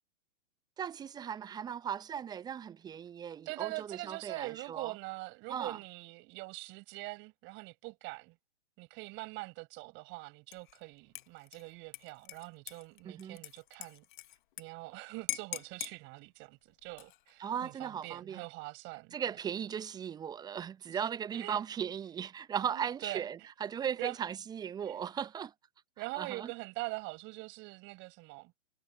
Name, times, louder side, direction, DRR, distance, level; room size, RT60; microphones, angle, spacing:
voice 1, 0.8-4.9 5.5-5.8 13.0-13.4 17.4-18.4 19.1-25.5 26.1-26.5, right 8 dB, 10° right, 0.8 m, -37 dB
voice 2, 3.4-8.3 8.8-14.0 14.6-19.4 20.9-21.0 21.3-21.6 22.7-23.3 24.0-24.2 24.8-25.0 26.0-28.5, right 25 dB, 35° right, 7.8 m, -43 dB
Dishes pots and pans / Liquid, 10.5-10.8 11.1-14.6 14.9-15.0 15.3-16.0 16.8-17.3, left 16 dB, 45° left, 1.4 m, -42 dB
figure-of-eight pair, 115°, 35 cm